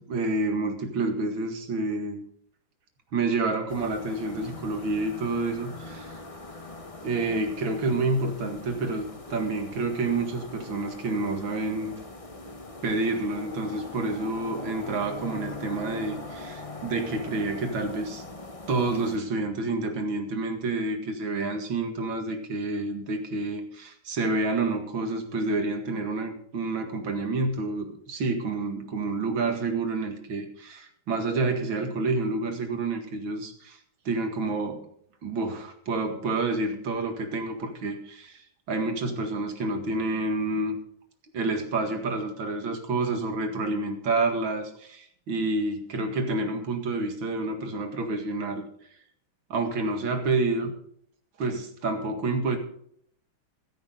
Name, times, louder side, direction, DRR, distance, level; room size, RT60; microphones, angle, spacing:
voice 1, 0.0-2.2 3.1-6.2 7.0-12.0 12.8-18.2 18.7-33.8 34.1-34.8 35.2-38.4 38.7-40.8 41.3-48.6 49.5-50.7 51.4-52.6, right 3 dB, 65° right, 5 dB, 2.6 m, -29 dB
sound 1, 3.7-19.2, left 2 dB, 25° left, 0.8 m, -41 dB
15.0 x 13.5 x 3.8 m, 0.65 s
omnidirectional pair, 2.4 m